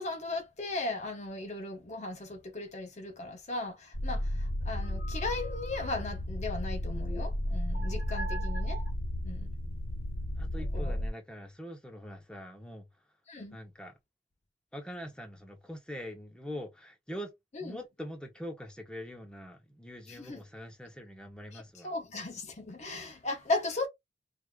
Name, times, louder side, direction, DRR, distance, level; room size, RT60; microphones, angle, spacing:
voice 1, 0.0-8.8 9.2-9.6 10.7-11.0 13.3-13.6 17.5-17.7 20.1-20.4 21.5-23.9, left 2 dB, 40° left, 0.6 m, -37 dB
sound 1, 3.9-11.1, equal, 80° left, 1.3 m, -33 dB
voice 2, 10.4-12.9 13.5-13.9 14.7-17.3 17.6-21.9, equal, 5° left, 0.7 m, -43 dB
4.6 x 2.5 x 2.3 m
head